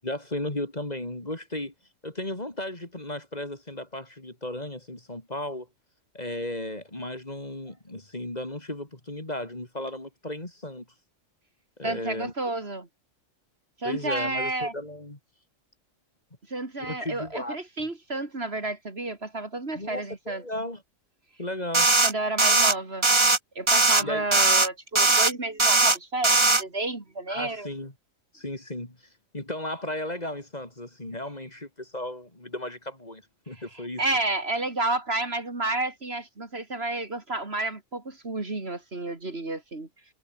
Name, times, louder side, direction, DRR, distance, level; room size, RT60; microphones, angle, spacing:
voice 1, 0.0-1.7 2.0-5.7 6.1-10.9 11.8-12.3 13.8-15.2 16.8-17.6 19.7-20.8 21.4-21.9 24.0-24.3 27.3-27.9 28.3-29.0 29.3-34.0, left 1 dB, 30° left, 3.6 m, -35 dB
voice 2, 11.8-12.9 13.8-14.7 16.5-20.4 22.0-23.1 23.6-27.7 33.7-39.9, right 2 dB, 50° right, 3.3 m, -31 dB
sound 1, 21.7-22.1 22.4-22.7 23.0-23.4 23.7-24.0 24.3-24.7 25.0-25.3 25.6-26.0 26.2-26.6, right 3 dB, 20° right, 1.4 m, -19 dB
omnidirectional pair, 1.4 m